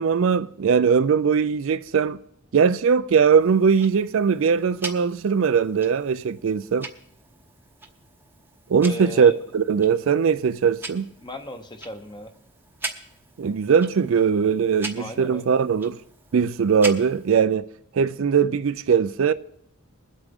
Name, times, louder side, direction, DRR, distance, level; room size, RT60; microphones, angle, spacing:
voice 1, 0.0-2.2 2.5-6.9 8.7-11.0 13.4-16.0 16.3-17.7 17.9-19.3, right 6 dB, 65° right, 0.4 m, -20 dB
Tick-tock, 3.4-17.4, right 3 dB, 10° right, 0.9 m, -41 dB
voice 2, 8.8-9.4 11.2-12.3 15.0-15.6, left 2 dB, 20° left, 1.0 m, -36 dB
21.5 x 8.2 x 3.6 m
head